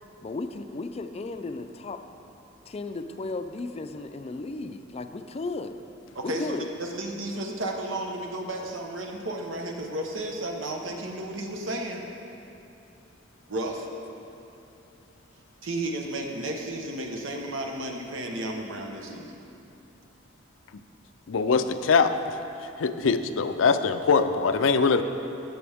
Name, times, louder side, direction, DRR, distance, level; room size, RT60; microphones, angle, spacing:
voice 1, 0.2-2.0 2.7-5.8 6.2-6.7, left 3 dB, 30° left, 8 dB, 0.4 m, -34 dB
voice 2, 6.1-12.0 13.5-13.9 15.6-19.3, right 1 dB, 80° right, 1 dB, 1.2 m, -33 dB
voice 3, 21.3-22.4 22.8-25.0, left 5 dB, 90° left, 10 dB, 0.5 m, -22 dB
17.0 x 7.0 x 3.5 m, 2.8 s
head